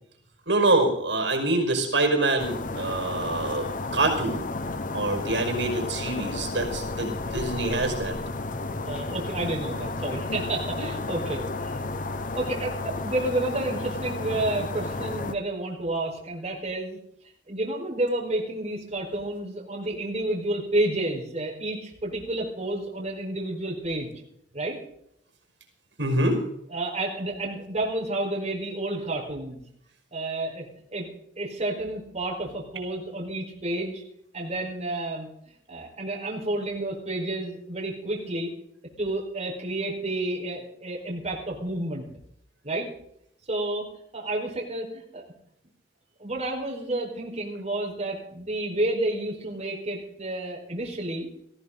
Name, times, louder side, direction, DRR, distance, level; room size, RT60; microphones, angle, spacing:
voice 1, 0.5-4.5 4.9-8.2 26.0-26.4, right 2 dB, 80° right, 4 dB, 5.1 m, -25 dB
sound 1, 2.4-15.3, left 2 dB, 45° left, 1.0 m, -32 dB
voice 2, 8.8-11.8 12.3-17.0 17.5-24.1 24.5-24.8 26.7-29.6 30.1-31.1 31.4-34.0 34.3-35.3 35.7-38.5 39.0-42.1 42.6-42.9 43.5-43.9 44.1-45.2 46.2-51.3, right 2 dB, 35° right, -2 dB, 4.8 m, -30 dB
18.5 x 16.0 x 4.0 m, 0.72 s
head